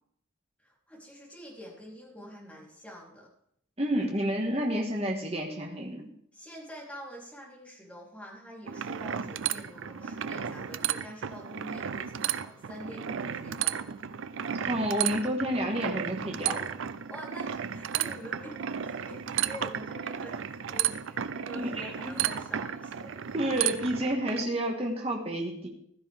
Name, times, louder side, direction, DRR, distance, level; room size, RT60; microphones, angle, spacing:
voice 1, 0.6-3.3 6.3-13.9 17.1-23.3, equal, 5° left, -5 dB, 3.6 m, -46 dB
voice 2, 3.8-6.1 14.7-16.6 21.5-22.1 23.3-25.7, equal, 30° right, 0 dB, 1.8 m, -30 dB
sound 1, 8.7-24.4, right 9 dB, 80° right, 0.5 m, -33 dB
15.5 x 12.5 x 3.6 m, 0.68 s
head